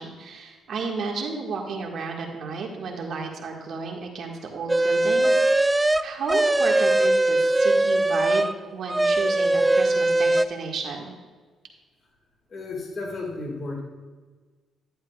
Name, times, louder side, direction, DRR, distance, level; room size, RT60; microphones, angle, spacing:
voice 1, 0.0-11.1, right 4 dB, 60° right, 1 dB, 1.7 m, -33 dB
sound 1, 4.7-8.6 8.9-10.5, right 2 dB, 15° right, 0.3 m, -20 dB
voice 2, 12.5-13.8, left 3 dB, 45° left, 0 dB, 2.0 m, -33 dB
11.0 x 10.0 x 2.4 m, 1.4 s
cardioid pair, 90°, 0 cm